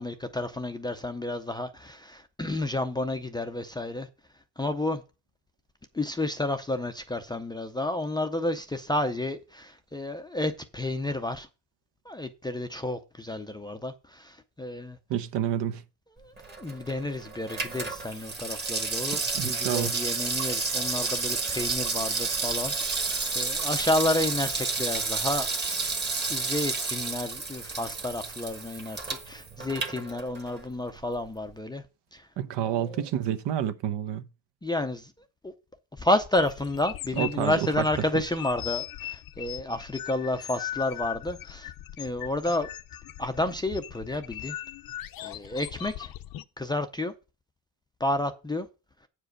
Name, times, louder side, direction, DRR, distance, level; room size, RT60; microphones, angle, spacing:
voice 1, 0.0-4.1 4.6-5.0 5.9-11.5 12.1-15.0 16.2-25.5 26.3-31.8 32.1-32.3 32.6-33.0 34.6-35.1 35.4-35.5 36.0-41.7 42.0-42.7 43.2-44.6 45.2-46.1 46.6-47.1 48.0-48.7, left 1 dB, 10° left, 0.4 m, -31 dB
voice 2, 15.1-15.8 19.1-19.9 32.4-34.2 37.2-37.8, right 10 dB, 70° right, 1.0 m, -29 dB
Water tap faucet / Sink (filling or washing), 16.4-30.7 31.0-31.1, right 4 dB, 25° right, 1.4 m, -31 dB
sound 1, 36.3-46.4, left 13 dB, 50° left, 0.6 m, -39 dB
8.8 x 4.9 x 6.4 m
cardioid pair, 155°, 44 cm